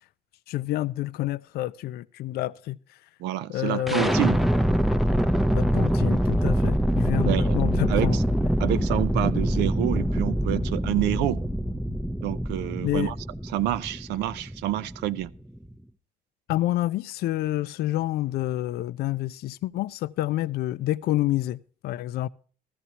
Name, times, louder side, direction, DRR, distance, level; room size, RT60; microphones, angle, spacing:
voice 1, 0.5-3.0 3.5-4.2 5.5-8.2 12.8-13.1 16.5-22.3, left 15 dB, 70° left, 0.4 m, -28 dB
voice 2, 3.2-4.4 6.7-6.8 7.2-7.6 7.9-8.2 8.6-11.4 12.2-13.1 13.5-15.3, right 14 dB, 85° right, 0.5 m, -28 dB
sound 1, 3.9-15.7, equal, ahead, 0.5 m, -25 dB
14.5 x 14.0 x 2.9 m
cardioid pair, 110°, 17 cm